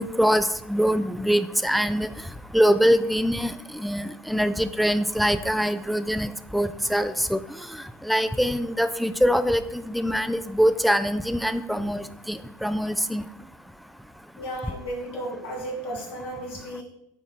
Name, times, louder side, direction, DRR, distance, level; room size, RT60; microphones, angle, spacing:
voice 1, 0.0-2.1 2.5-7.4 8.0-13.2, equal, ahead, 11 dB, 0.4 m, -23 dB
voice 2, 14.4-16.8, right 1 dB, 50° left, -1 dB, 2.3 m, -34 dB
8.9 x 3.9 x 4.5 m, 0.82 s
figure-of-eight pair, 70°, 12 cm